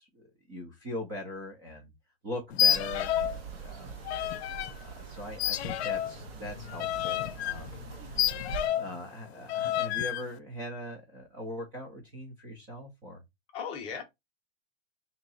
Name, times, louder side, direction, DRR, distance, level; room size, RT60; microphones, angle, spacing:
voice 1, 0.0-1.9 2.2-4.0 4.8-7.9 8.8-13.2, left 1 dB, 15° right, 0.3 m, -41 dB
sound 1, 2.5-3.4 3.7-4.7 5.4-9.0 9.5-10.2, left 11 dB, 85° left, 0.5 m, -30 dB
sound 2, 2.7-8.7, right 7 dB, 70° right, 0.7 m, -43 dB
voice 2, 8.0-8.5 13.5-14.0, left 7 dB, 20° left, 0.6 m, -39 dB
3.0 x 2.7 x 3.9 m
supercardioid pair, 165°, 31 cm